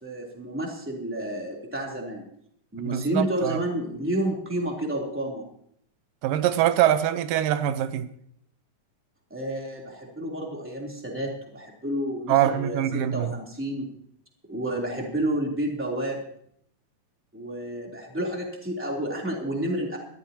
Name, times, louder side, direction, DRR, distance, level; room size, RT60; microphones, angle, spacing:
voice 1, 0.0-2.2 2.7-5.4 9.3-13.9 14.5-16.2 17.3-20.0, right 1 dB, 5° right, 2.9 m, -30 dB
voice 2, 2.8-3.6 6.2-8.1 12.3-13.3, right 11 dB, 90° right, 2.5 m, -23 dB
22.0 x 13.5 x 2.9 m
omnidirectional pair, 3.7 m